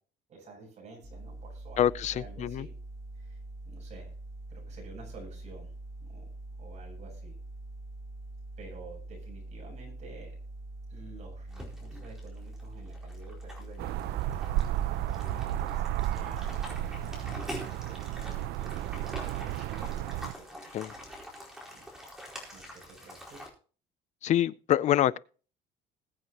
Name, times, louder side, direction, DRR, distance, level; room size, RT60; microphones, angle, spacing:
voice 1, 0.3-1.8 2.1-2.7 3.1-3.4 3.6-4.1 4.5-5.7 6.0-6.3 6.6-7.3 8.6-10.3 10.9-14.4 15.0-16.9 17.5-19.8 20.1-20.4 20.8-20.9 21.7-21.9 22.5-23.4, right 3 dB, 40° right, 7.7 m, -51 dB
sound 1, 1.0-17.5, right 2 dB, 20° right, 2.9 m, -44 dB
voice 2, 1.8-2.7 20.7-20.9 24.2-25.2, left 11 dB, 45° left, 0.5 m, -26 dB
sound 2, 11.5-23.5, left 1 dB, 5° right, 4.4 m, -45 dB
sound 3, 13.8-20.3, right 13 dB, 75° right, 0.6 m, -33 dB
21.0 x 8.1 x 3.0 m
cardioid pair, 145°, 17 cm